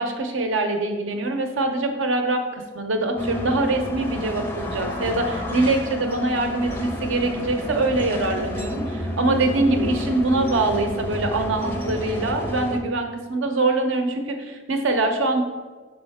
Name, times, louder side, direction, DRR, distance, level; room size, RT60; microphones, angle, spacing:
voice 1, 0.0-15.4, right 2 dB, 80° right, 5 dB, 0.7 m, -23 dB
sound 1, 3.2-12.8, left 1 dB, 10° left, 0.4 m, -30 dB
5.3 x 5.1 x 3.5 m, 1.4 s
head